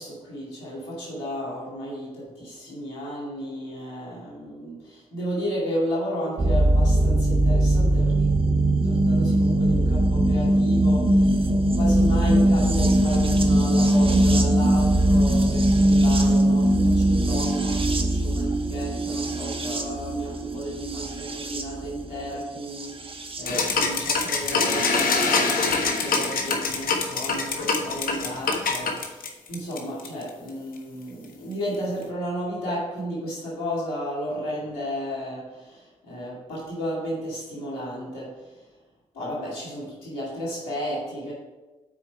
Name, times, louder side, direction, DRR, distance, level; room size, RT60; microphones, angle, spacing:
voice 1, 0.0-8.3 8.8-38.6 39.1-41.3, equal, 90° left, -6 dB, 2.3 m, -33 dB
sound 1, 6.4-23.4 24.6-24.7, right 1 dB, 35° right, 1.1 m, -21 dB
sound 2, 23.5-30.3, left 4 dB, 70° left, 1.0 m, -24 dB
6.2 x 4.5 x 5.7 m, 1.1 s
hypercardioid pair, 40°, 15 cm